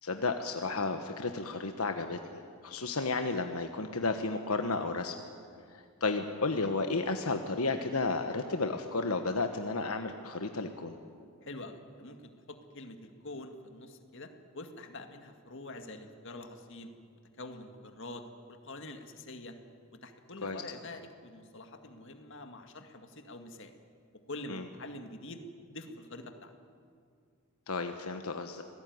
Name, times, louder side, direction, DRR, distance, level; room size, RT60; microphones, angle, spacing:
voice 1, 0.0-5.2 5.7-11.0 20.4-20.6 24.5-24.6 27.7-28.6, left 3 dB, 85° left, 6 dB, 1.3 m, -33 dB
voice 2, 11.4-14.3 14.5-16.9 17.4-19.5 20.0-23.7 24.3-25.4 25.7-26.5, left 2 dB, 60° left, 6 dB, 2.1 m, -45 dB
26.0 x 18.0 x 9.5 m, 2.2 s
head